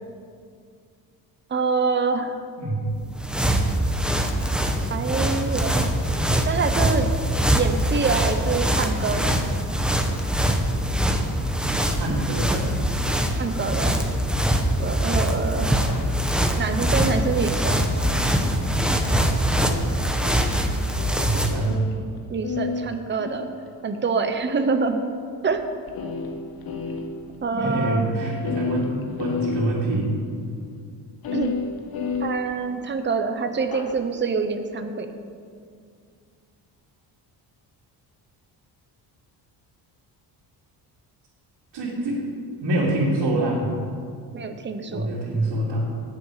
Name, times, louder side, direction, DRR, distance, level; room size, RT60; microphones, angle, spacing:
voice 1, 1.5-2.4 4.9-5.9 6.5-7.1 7.5-9.5 13.4-14.0 14.8-15.8 16.6-17.8 22.3-23.5 23.8-25.0 25.4-25.6 27.4-28.1 31.3-31.6 32.2-35.1 44.3-45.1, right 4 dB, 25° right, 7 dB, 1.0 m, -25 dB
voice 2, 2.6-2.9 11.9-12.7 21.1-21.8 27.5-30.1 41.7-42.2 42.6-43.7 44.9-45.9, right 1 dB, 75° right, -7 dB, 3.0 m, -25 dB
sound 1, 2.9-21.7, equal, ahead, 1.1 m, -23 dB
sound 2, 15.9-16.2 18.1-22.2 22.4-24.0 24.9-25.0 25.5-25.6 25.9-27.4 27.7-27.8 28.0-28.1 28.4-30.0 31.2-33.0 33.6-34.0, left 4 dB, 60° left, 1.3 m, -32 dB
19.0 x 7.1 x 5.0 m, 2.2 s
cardioid pair, 110°, 41 cm